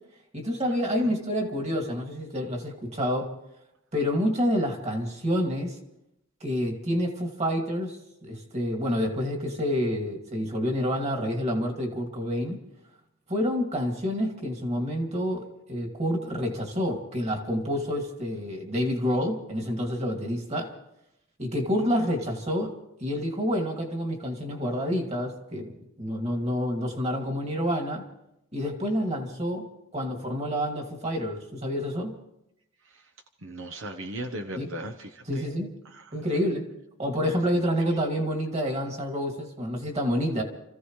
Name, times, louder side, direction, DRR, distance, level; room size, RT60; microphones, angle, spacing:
voice 1, 0.3-3.3 3.9-5.8 6.4-12.6 13.3-15.4 15.7-20.7 21.4-22.7 23.0-28.0 28.5-29.7 29.9-32.1 34.6-34.7 35.3-35.7 36.1-36.7 37.0-40.4, equal, 35° right, 3 dB, 2.4 m, -28 dB
voice 2, 33.4-35.5 35.8-36.2 37.5-37.6, right 1 dB, 75° right, 4 dB, 1.0 m, -38 dB
29.5 x 15.5 x 3.2 m, 0.84 s
head